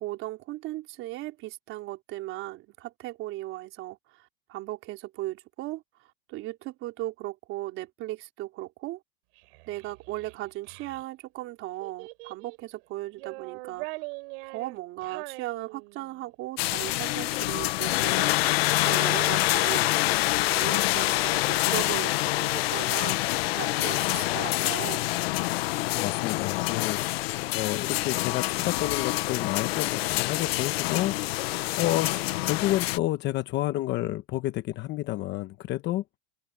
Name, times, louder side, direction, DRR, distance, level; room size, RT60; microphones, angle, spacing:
voice 1, 0.0-4.2 4.5-5.8 6.3-9.0 9.7-13.9 14.5-18.3 18.8-19.9 20.2-23.2 23.6-25.0, right 17 dB, 35° right, 4.0 m, -37 dB
Child speech kid speaking, 9.4-11.0 11.8-12.7 13.1-16.2, right 27 dB, 50° right, 4.2 m, -42 dB
sound 1, 16.6-33.0, left 19 dB, 60° left, 0.9 m, -26 dB
voice 2, 25.9-36.0, left 16 dB, 30° left, 1.1 m, -30 dB
supercardioid pair, 150°, 35 cm